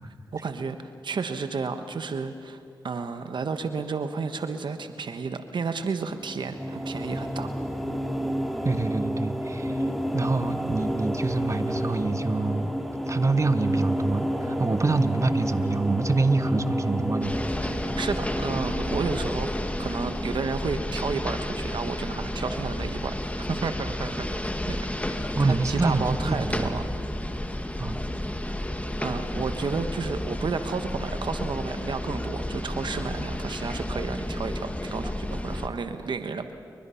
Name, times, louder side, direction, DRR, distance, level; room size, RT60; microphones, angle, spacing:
voice 1, 0.3-7.5 18.0-24.3 24.7-26.8 29.0-36.5, right 4 dB, 75° right, 8 dB, 1.2 m, -32 dB
sound 1, 6.2-21.5, equal, ahead, 3.4 m, -31 dB
voice 2, 8.6-9.9 10.1-12.7 13.1-17.3 17.6-17.7 25.3-26.9 27.8-28.0, right 3 dB, 40° right, 9 dB, 1.4 m, -26 dB
sound 2, 17.2-35.7, left 1 dB, 15° left, 2.1 m, -31 dB
30.0 x 23.0 x 5.8 m, 2.5 s
cardioid pair, 45°, 8 cm